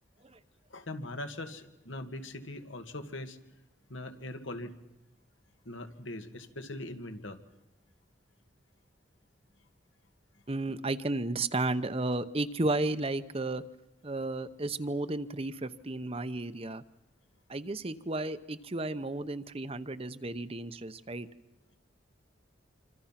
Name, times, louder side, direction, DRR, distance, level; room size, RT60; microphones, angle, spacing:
voice 1, 0.7-3.4 3.9-4.7 5.7-7.4, left 1 dB, 80° left, 6 dB, 2.1 m, -41 dB
voice 2, 10.5-13.6 14.0-16.8 17.5-21.3, right 2 dB, 30° right, 12 dB, 0.9 m, -33 dB
27.0 x 26.0 x 5.9 m, 0.96 s
head